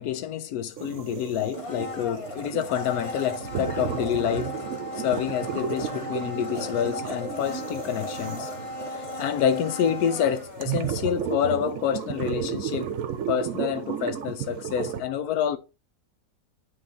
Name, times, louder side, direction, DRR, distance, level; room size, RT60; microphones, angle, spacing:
voice 1, 0.0-4.5 5.0-8.5 9.2-12.9 13.3-15.6, left 9 dB, 75° left, 1.1 m, -27 dB
sound 1, 0.8-15.0, right 9 dB, 65° right, 0.9 m, -34 dB
Domestic sounds home sounds, 1.5-11.5 11.8-11.9, left 1 dB, 30° left, 0.7 m, -36 dB
9.3 x 3.1 x 3.8 m
omnidirectional pair, 1.7 m